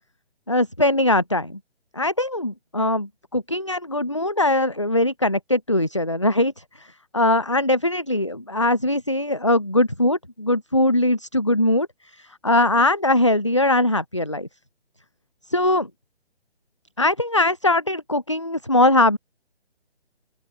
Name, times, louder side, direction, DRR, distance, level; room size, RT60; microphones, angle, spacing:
voice 1, 0.5-1.6 1.9-6.5 6.8-6.9 7.1-11.9 12.4-14.5 15.5-15.9 17.0-19.2, left 1 dB, 30° left, 0.4 m, -21 dB
open air
figure-of-eight pair, 145°, 33 cm